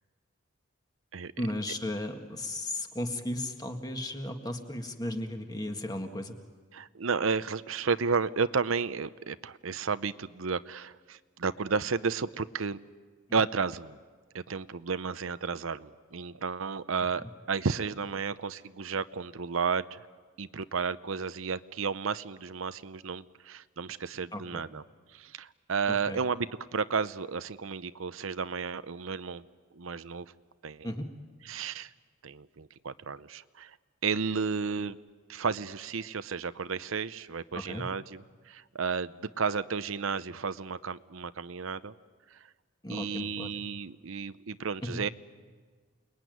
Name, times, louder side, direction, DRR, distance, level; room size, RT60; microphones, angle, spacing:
voice 1, 1.4-6.4 17.2-17.3 24.3-24.6 25.9-26.2 30.8-31.1 37.5-37.9 42.8-43.6 44.8-45.0, left 1 dB, 20° left, 5 dB, 1.8 m, -35 dB
voice 2, 6.7-12.8 13.3-14.0 14.3-20.0 20.4-24.8 25.1-29.5 29.8-30.3 30.6-30.9 31.4-31.9 32.2-33.8 34.0-35.0 35.3-41.9 42.3-42.4 42.9-45.1, right 5 dB, 75° right, 13 dB, 0.7 m, -32 dB
29.0 x 21.0 x 9.4 m, 1.5 s
head